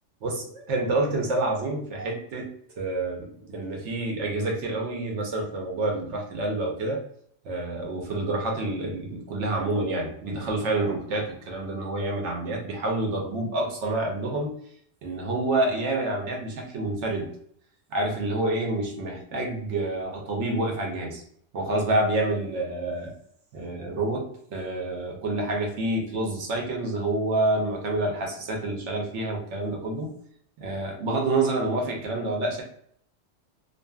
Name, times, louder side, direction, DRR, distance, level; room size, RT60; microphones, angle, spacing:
voice 1, 0.2-2.5 2.8-7.0 7.4-14.6 15.0-17.3 17.9-21.2 21.5-23.1 23.5-30.1 30.6-32.6, right 2 dB, 70° right, 0 dB, 1.0 m, -28 dB
2.6 x 2.4 x 2.2 m, 0.65 s
omnidirectional pair, 1.3 m